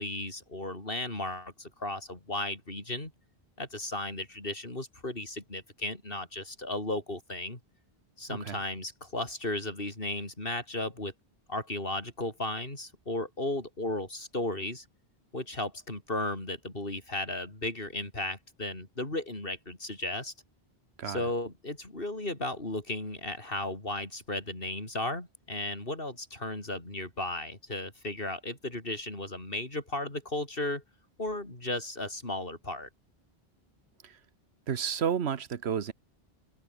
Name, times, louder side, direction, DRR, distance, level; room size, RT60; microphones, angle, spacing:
voice 1, 0.0-3.1 3.6-7.6 8.2-11.1 11.5-14.9 15.3-20.3 21.1-30.8 31.2-32.9, left 2 dB, 60° left, 5.4 m, -35 dB
voice 2, 8.3-8.6 21.0-21.3 34.0-34.2 34.7-35.9, right 7 dB, 80° right, 1.3 m, -31 dB
omnidirectional pair, 1.1 m